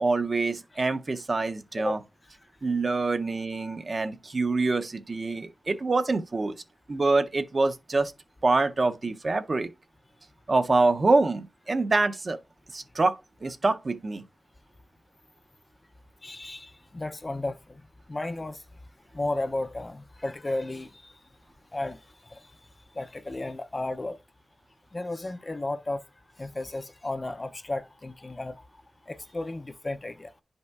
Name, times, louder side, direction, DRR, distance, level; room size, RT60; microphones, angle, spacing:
voice 1, 0.0-2.0 2.6-6.6 6.9-8.1 8.4-9.7 10.5-12.4 12.7-14.2, right 3 dB, 45° right, 0.5 m, -25 dB
voice 2, 16.2-17.8 18.1-18.6 19.1-21.1 21.7-22.0 22.2-22.4 22.9-24.2 24.9-26.0 26.4-28.6 29.1-30.3, left 2 dB, 30° left, 0.4 m, -33 dB
10.0 x 5.3 x 2.3 m
wide cardioid pair, 110°, 0 cm